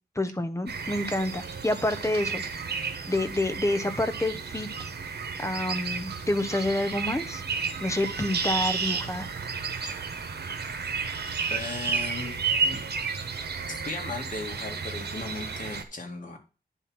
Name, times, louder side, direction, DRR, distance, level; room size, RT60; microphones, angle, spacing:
voice 1, 0.2-4.7 5.4-7.4 7.8-9.3, left 1 dB, 15° left, 9 dB, 1.0 m, -28 dB
sound 1, 0.7-15.8, right 5 dB, 90° right, 1.2 m, -32 dB
voice 2, 11.5-12.8 13.7-16.4, left 3 dB, 50° left, 2 dB, 2.3 m, -37 dB
10.0 x 4.3 x 5.8 m, 0.33 s
wide cardioid pair, 95°, 17 cm